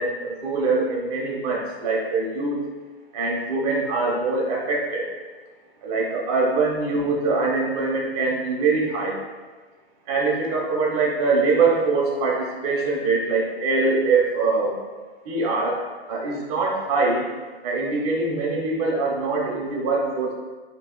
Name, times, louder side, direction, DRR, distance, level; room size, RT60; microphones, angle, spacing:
voice 1, 0.0-2.6 3.1-5.1 5.8-9.2 10.1-14.7 15.2-17.2 17.6-20.3, right 3 dB, 35° right, -3 dB, 1.1 m, -23 dB
5.7 x 3.0 x 2.2 m, 1.3 s
hypercardioid pair, 145°, 32 cm